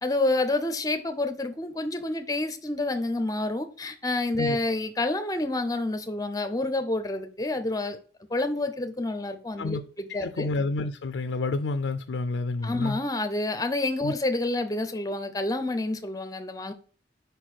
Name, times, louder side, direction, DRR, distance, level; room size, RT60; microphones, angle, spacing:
voice 1, 0.0-8.0 8.3-10.5 12.6-16.7, left 2 dB, 20° left, 0.7 m, -28 dB
voice 2, 9.6-13.0 14.0-14.1, left 3 dB, 85° left, 0.4 m, -30 dB
5.2 x 4.4 x 4.4 m
head